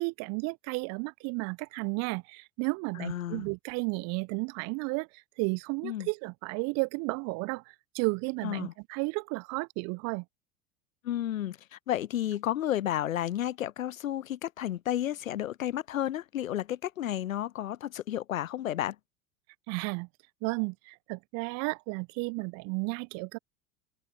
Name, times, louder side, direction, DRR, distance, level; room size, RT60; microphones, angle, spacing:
voice 1, 0.0-10.2 19.7-20.1 20.4-23.4, right 31 dB, 40° right, 0.8 m, -33 dB
voice 2, 3.0-3.4 5.8-6.1 8.4-8.7 11.0-19.0, left 12 dB, 80° left, 0.5 m, -32 dB
figure-of-eight pair, 80°, 40 cm